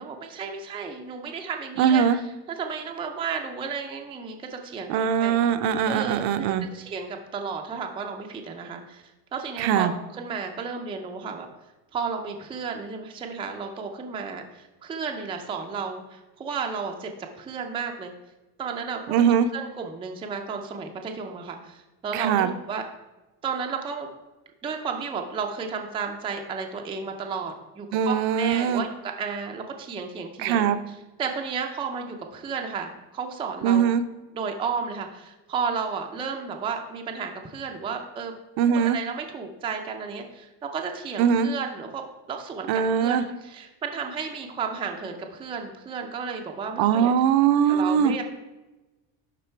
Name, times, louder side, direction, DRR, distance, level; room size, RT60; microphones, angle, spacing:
voice 1, 0.0-2.0 2.5-4.9 5.2-5.4 5.9-9.0 9.3-9.9 10.1-11.5 11.9-17.1 17.4-18.1 18.6-22.8 23.4-24.1 24.6-30.6 31.2-33.9 34.3-38.3 38.7-47.1 47.7-48.2, right 5 dB, 15° right, 3 dB, 0.4 m, -33 dB
voice 2, 1.8-2.2 4.9-6.7 9.6-9.9 19.1-19.5 22.1-22.5 27.9-28.8 30.4-30.8 33.6-34.0 38.6-39.0 41.2-41.5 42.7-43.2 46.8-48.1, right 8 dB, 55° right, 10 dB, 0.6 m, -21 dB
11.0 x 3.8 x 4.4 m, 1.1 s
cardioid pair, 160°, 45 cm